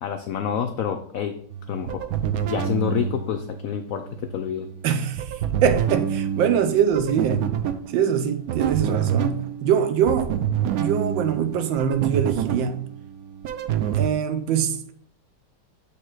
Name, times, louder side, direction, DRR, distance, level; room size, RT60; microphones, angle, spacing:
voice 1, 0.0-1.4 1.7-2.0 2.5-4.7, left 8 dB, 90° left, 0.7 m, -28 dB
sound 1, 1.5-14.1, right 9 dB, 70° right, 0.9 m, -28 dB
voice 2, 4.8-7.6 7.9-12.9 13.9-14.9, right 8 dB, 90° right, 1.4 m, -23 dB
7.0 x 3.4 x 4.7 m
omnidirectional pair, 2.0 m